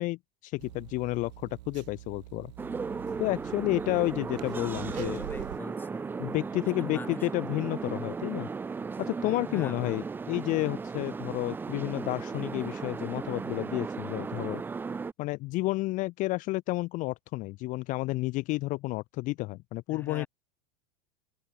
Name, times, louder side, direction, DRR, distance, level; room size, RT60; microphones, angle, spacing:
voice 1, 0.0-2.5 3.2-5.3 6.2-8.5 9.0-14.6 15.2-20.3, left 20 dB, 40° left, 0.7 m, -31 dB
sound 1, 0.6-5.6, right 16 dB, 85° right, 1.5 m, -45 dB
sound 2, 2.6-15.1, right 5 dB, 10° right, 0.5 m, -36 dB
voice 2, 4.4-6.1 6.8-7.3 9.5-10.1 19.9-20.3, left 4 dB, 10° left, 1.3 m, -44 dB
supercardioid pair, 150°, 21 cm